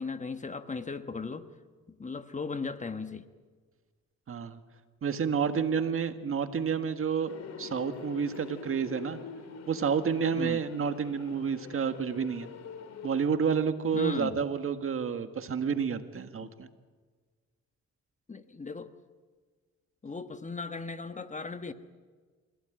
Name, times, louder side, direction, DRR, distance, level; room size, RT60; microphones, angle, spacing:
voice 1, 0.0-1.5 1.9-3.2 10.3-10.6 13.9-14.4 16.4-16.5 18.3-18.9 20.0-21.7, left 4 dB, 25° left, 1.3 m, -37 dB
voice 2, 4.3-4.6 5.0-7.3 7.6-9.2 9.7-12.5 13.0-16.7, right 6 dB, 45° right, 1.7 m, -29 dB
sound 1, 7.3-13.2, left 6 dB, 55° left, 2.6 m, -45 dB
27.5 x 16.5 x 9.2 m
cardioid pair, 90°, 30 cm